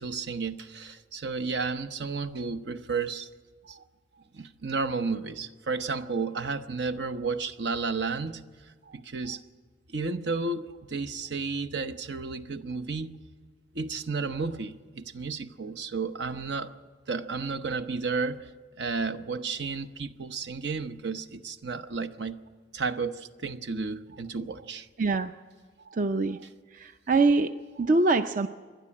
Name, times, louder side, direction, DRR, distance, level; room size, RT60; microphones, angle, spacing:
voice 1, 0.0-3.3 3.7-3.8 4.3-8.4 8.9-9.4 9.9-13.1 13.7-16.7 17.1-18.5 18.8-22.4 22.7-24.9, right 4 dB, 75° right, 9 dB, 0.8 m, -32 dB
voice 2, 25.0-25.3 25.9-26.4 26.7-28.5, right 3 dB, 50° right, 9 dB, 0.5 m, -25 dB
26.5 x 12.0 x 8.6 m, 1.6 s
head